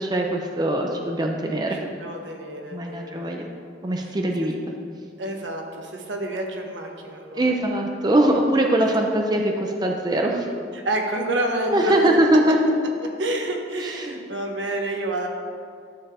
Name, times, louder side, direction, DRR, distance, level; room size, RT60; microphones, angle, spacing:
voice 1, 0.0-1.8 2.7-3.5 3.8-4.6 7.3-10.5 11.7-12.6 13.8-14.2, right 1 dB, 20° right, 2 dB, 0.6 m, -22 dB
voice 2, 1.8-3.3 5.2-7.5 10.7-12.0 13.2-15.3, right 1 dB, 80° right, 2 dB, 1.2 m, -28 dB
11.5 x 6.9 x 3.7 m, 2.3 s
head